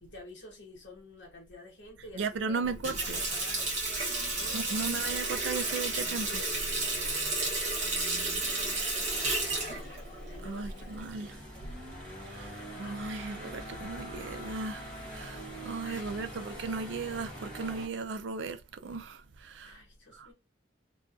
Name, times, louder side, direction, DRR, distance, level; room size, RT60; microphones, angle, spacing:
voice 1, 0.0-3.7 4.3-5.8 8.0-9.3 10.3-11.8 12.5-14.4 15.8-16.7 19.6-20.3, left 2 dB, 70° left, 1.1 m, -51 dB
voice 2, 2.2-3.2 4.5-6.4 10.4-11.3 12.3-19.8 20.2-20.3, right 4 dB, 70° right, 0.4 m, -36 dB
Water tap faucet, 2.6-11.1, right 2 dB, 40° right, 0.8 m, -32 dB
sound 1, 9.0-17.9, equal, 5° left, 1.0 m, -44 dB
2.5 x 2.3 x 2.3 m
head